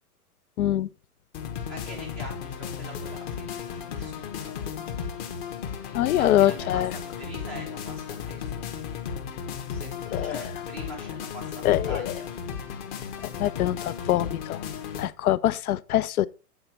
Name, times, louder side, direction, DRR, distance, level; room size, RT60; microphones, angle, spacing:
voice 1, 0.6-0.9 5.9-6.9 10.1-10.4 11.6-12.1 13.3-14.6 15.0-16.3, left 13 dB, 70° left, 0.5 m, -24 dB
sound 1, 1.3-15.1, left 7 dB, 30° left, 1.0 m, -35 dB
voice 2, 1.7-4.6 6.0-8.5 9.7-12.3, right 1 dB, ahead, 0.4 m, -43 dB
8.4 x 4.1 x 5.7 m
hypercardioid pair, 140°, 46 cm